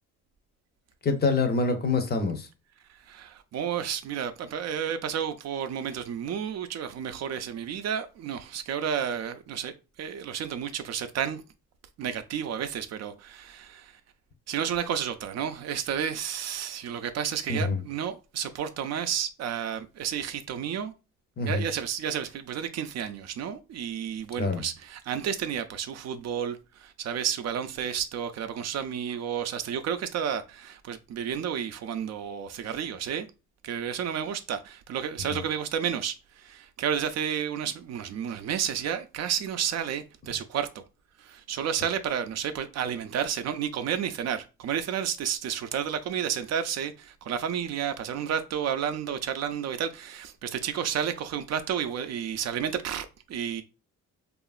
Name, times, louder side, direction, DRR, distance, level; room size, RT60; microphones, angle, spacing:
voice 1, 1.0-2.5 17.5-17.8 21.4-21.6 24.4-24.6 35.3-35.4, left 3 dB, 35° left, 0.6 m, -26 dB
voice 2, 2.9-11.4 12.0-14.0 14.5-20.9 21.4-33.3 33.6-40.8 41.2-53.6, right 8 dB, 60° right, 0.4 m, -31 dB
2.8 x 2.4 x 2.3 m
cardioid pair, 90°, 30 cm